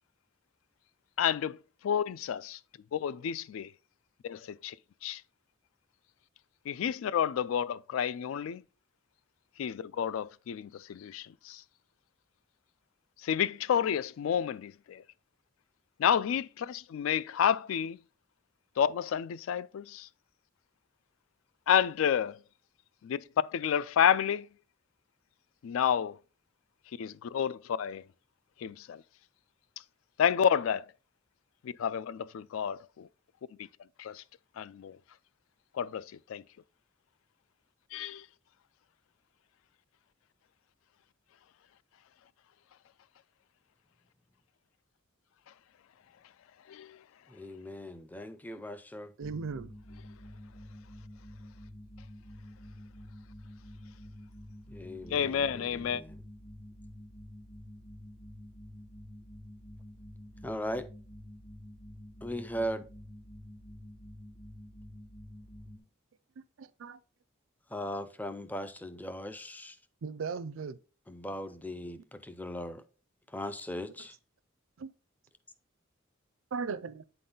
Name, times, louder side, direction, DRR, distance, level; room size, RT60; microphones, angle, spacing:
voice 1, 1.2-2.6 2.9-3.7 4.2-4.8 5.0-5.2 6.7-8.6 9.6-11.6 13.2-15.0 16.0-18.0 18.8-20.1 21.7-22.4 23.0-24.5 25.6-26.2 27.0-28.0 28.6-29.0 30.2-30.9 31.6-33.1 33.6-33.7 34.0-34.2 34.6-35.0 35.7-36.0 36.3-36.4 37.9-38.3 46.7-47.0 55.1-56.0, left 8 dB, 75° left, 0.3 m, -30 dB
voice 2, 47.3-49.1 54.7-56.2 60.4-60.9 62.2-62.9 67.7-69.8 71.1-72.8 73.3-74.1, equal, 10° left, 0.4 m, -38 dB
sound 1, 49.2-65.8, left 1 dB, 35° left, 1.9 m, -49 dB
voice 3, 49.2-49.7 66.6-67.0 70.0-70.8 74.8-74.9 76.5-77.0, right 5 dB, 70° right, 0.4 m, -37 dB
8.4 x 3.9 x 3.8 m
head